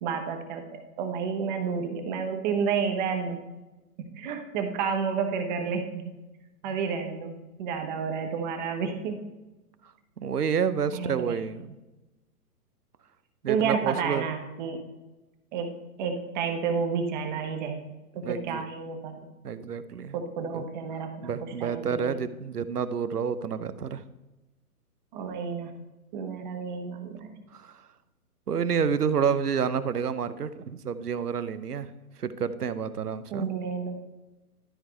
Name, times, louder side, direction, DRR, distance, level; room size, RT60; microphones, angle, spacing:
voice 1, 0.0-3.4 4.0-6.1 6.6-7.3 7.6-9.2 10.9-11.4 13.5-14.8 15.5-15.7 16.0-17.8 18.1-19.3 20.1-22.2 25.1-25.7 26.1-27.3 33.3-34.0, right 6 dB, 30° right, 5 dB, 1.2 m, -30 dB
voice 2, 10.2-11.7 13.4-14.3 18.2-18.6 19.4-20.2 20.5-20.7 21.2-24.0 27.5-27.8 28.5-31.9 32.2-33.5, right 7 dB, 75° right, 13 dB, 0.8 m, -29 dB
12.5 x 4.8 x 4.5 m, 1.1 s
figure-of-eight pair, 125°, 46 cm